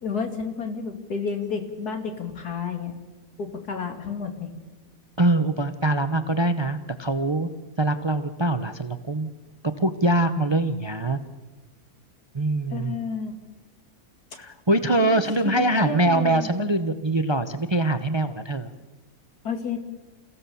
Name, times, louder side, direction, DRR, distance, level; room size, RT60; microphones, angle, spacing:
voice 1, 0.0-2.9 3.4-4.5 12.7-13.3 15.0-16.5 19.4-19.8, left 5 dB, 80° left, 5 dB, 2.9 m, -31 dB
voice 2, 5.2-7.5 7.8-9.3 9.6-11.2 12.3-13.0 14.3-18.7, right 2 dB, 25° right, 10 dB, 0.6 m, -23 dB
29.0 x 16.0 x 7.0 m, 1.2 s
omnidirectional pair, 1.6 m